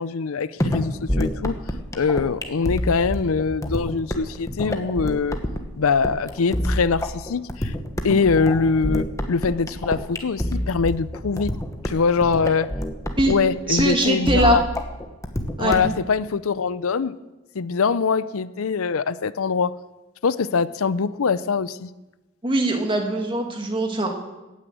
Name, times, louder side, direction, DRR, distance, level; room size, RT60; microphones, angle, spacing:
voice 1, 0.0-1.6 1.9-5.4 5.8-7.7 8.0-11.5 11.9-12.7 13.3-14.6 15.6-17.1 17.5-19.7 20.2-21.9, left 5 dB, 80° left, 16 dB, 0.5 m, -23 dB
sound 1, 0.6-16.0, equal, 15° left, 1.2 m, -28 dB
voice 2, 13.7-14.6 15.6-15.8 22.4-24.1, right 2 dB, 25° right, 3 dB, 1.9 m, -21 dB
17.0 x 9.7 x 7.8 m, 1.1 s
head